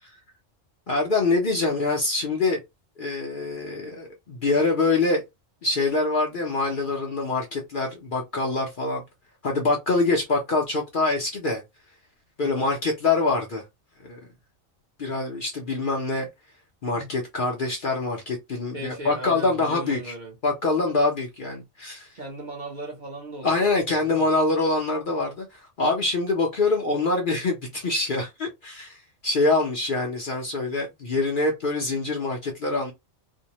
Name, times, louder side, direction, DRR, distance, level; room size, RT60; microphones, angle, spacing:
voice 1, 0.9-2.6 3.0-5.2 5.6-9.0 9.4-11.6 12.4-13.6 14.0-14.2 15.0-16.3 16.8-20.1 20.4-22.1 23.4-32.9, left 3 dB, 50° left, 0.7 m, -25 dB
voice 2, 12.4-12.7 16.9-17.1 18.7-20.3 22.1-24.3, right 1 dB, 45° right, 0.8 m, -38 dB
2.6 x 2.1 x 2.8 m
omnidirectional pair, 1.3 m